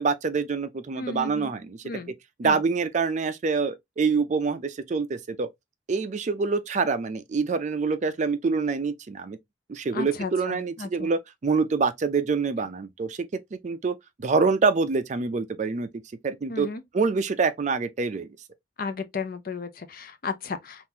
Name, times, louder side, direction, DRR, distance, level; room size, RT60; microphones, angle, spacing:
voice 1, 0.0-1.8 2.4-5.5 5.9-9.4 9.7-15.9 16.2-16.7 16.9-18.3, right 4 dB, 40° right, 0.4 m, -26 dB
voice 2, 0.9-1.5 1.8-2.1 2.4-2.6 9.9-11.1 16.5-16.8 18.8-20.9, left 4 dB, 50° left, 0.5 m, -34 dB
3.7 x 2.5 x 2.7 m
head